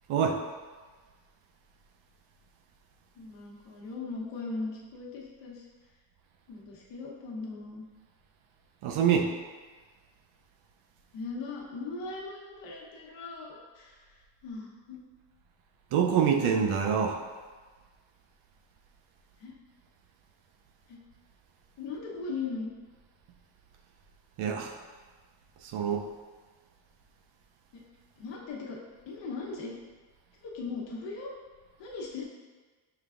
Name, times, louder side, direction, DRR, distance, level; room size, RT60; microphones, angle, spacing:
voice 1, 0.1-0.4 8.8-9.3 15.9-17.2 24.4-24.8 25.6-26.1, right 7 dB, 85° right, 4 dB, 0.7 m, -26 dB
voice 2, 3.1-5.7 6.5-7.8 11.1-15.0 19.4-19.5 20.9-21.0 21.8-22.7 27.7-27.8 28.2-28.8 29.0-29.8 30.4-31.3 31.8-32.2, left 4 dB, 60° left, -3 dB, 1.0 m, -39 dB
5.7 x 3.3 x 2.4 m, 1.4 s
cardioid pair, 150°, 48 cm